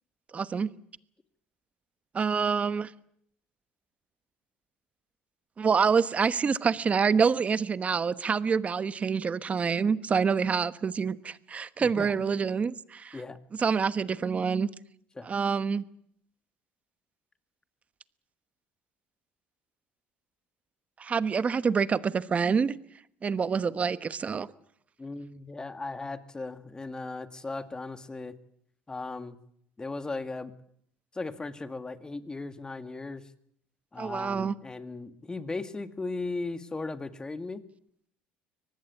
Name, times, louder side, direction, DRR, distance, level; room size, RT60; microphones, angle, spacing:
voice 1, 0.3-0.7 2.1-2.9 5.6-13.2 13.6-14.7 15.2-15.8 21.0-22.7 23.2-24.5 34.0-34.5, right 6 dB, 30° right, 1.1 m, -26 dB
voice 2, 11.8-12.1 13.1-13.4 15.2-15.3 25.0-28.3 28.9-29.4 29.8-30.5 31.1-33.2 33.9-37.6, left 3 dB, 15° left, 1.9 m, -37 dB
24.0 x 19.0 x 8.6 m
supercardioid pair, 100°, 4 cm